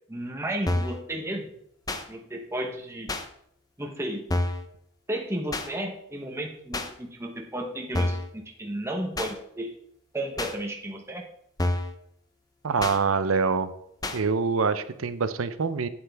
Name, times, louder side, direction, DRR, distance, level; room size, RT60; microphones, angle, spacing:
voice 1, 0.1-1.5 2.1-3.1 3.8-4.2 5.1-9.7 10.1-11.2, right 1 dB, 15° right, 1 dB, 0.9 m, -33 dB
sound 1, 0.7-1.0 1.9-2.0 3.1-3.3 4.3-4.7 5.5-5.7 6.7-6.9 7.9-8.3 9.2-9.3 10.4-10.5 11.6-11.9 12.8-13.0 14.0-14.2, left 1 dB, 20° left, 0.6 m, -28 dB
voice 2, 12.6-13.7 14.1-15.9, right 5 dB, 75° right, 12 dB, 0.6 m, -25 dB
8.8 x 7.8 x 3.4 m, 0.72 s
head